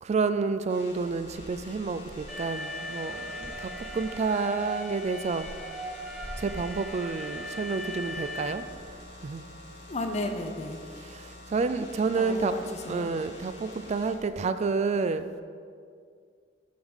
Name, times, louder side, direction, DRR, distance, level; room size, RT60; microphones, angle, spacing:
voice 1, 0.0-5.5 6.4-8.6 9.2-9.4 11.1-12.5 12.9-15.4, right 4 dB, 35° right, 11 dB, 0.3 m, -29 dB
sound 1, 0.7-14.1, left 1 dB, 80° left, 1.8 m, -48 dB
sound 2, 1.3-2.5 3.0-4.2 4.8-9.2, equal, 65° right, 1.7 m, -47 dB
Alarm, 2.3-8.5, equal, ahead, 0.9 m, -39 dB
voice 2, 9.9-10.8 12.1-13.1, left 2 dB, 40° left, 5 dB, 0.6 m, -33 dB
8.5 x 3.7 x 6.2 m, 2.1 s
head